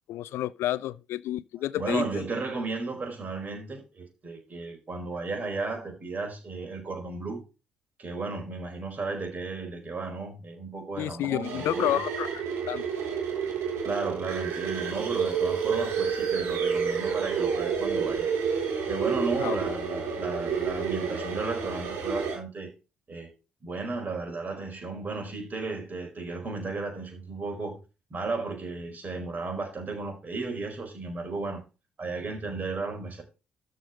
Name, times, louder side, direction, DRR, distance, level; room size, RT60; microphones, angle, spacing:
voice 1, 0.1-2.0 11.0-12.3 12.7-12.8 19.4-19.6, left 13 dB, 55° left, 0.4 m, -30 dB
voice 2, 1.7-7.4 8.0-12.0 13.8-18.3 18.9-22.7 23.1-23.3 23.6-27.8 28.1-31.6 32.0-33.2, right 3 dB, 30° right, 4.8 m, -34 dB
sound 1, 11.4-22.4, right 6 dB, 55° right, 3.6 m, -29 dB
13.0 x 5.1 x 4.3 m
figure-of-eight pair, 45°, 5 cm